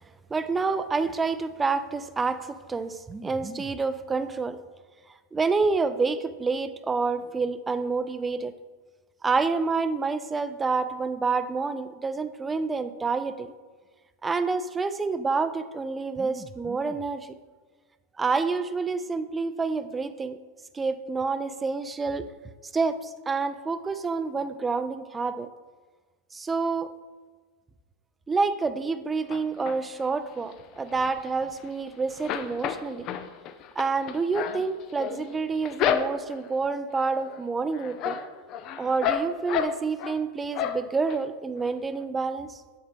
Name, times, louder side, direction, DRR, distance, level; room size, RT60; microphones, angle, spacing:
voice 1, 0.3-4.6 5.3-8.5 9.2-13.5 14.2-17.4 18.2-20.4 20.7-22.3 22.7-25.5 26.3-26.9 28.3-33.1 33.8-38.2 38.8-42.6, right 4 dB, 15° right, 12 dB, 0.4 m, -28 dB
sound 1, 29.3-30.1 30.5-31.8 32.1-36.5 37.0-37.4 37.7-40.2 40.5-41.2 41.6-41.7 42.0-42.1, left 8 dB, 45° left, 0.5 m, -31 dB
7.7 x 6.4 x 3.5 m, 1.4 s
hypercardioid pair, 120°, 0 cm